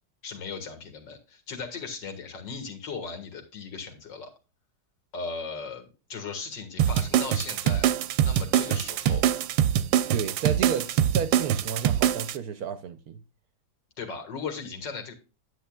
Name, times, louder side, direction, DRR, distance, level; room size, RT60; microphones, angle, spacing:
voice 1, 0.2-4.3 5.1-7.9 8.2-9.3 14.0-15.1, left 5 dB, 70° left, 2.3 m, -37 dB
sound 1, 6.8-12.4, right 10 dB, 90° right, 1.4 m, -24 dB
voice 2, 10.1-13.2, right 7 dB, 65° right, 1.0 m, -32 dB
9.5 x 8.6 x 2.3 m
omnidirectional pair, 2.0 m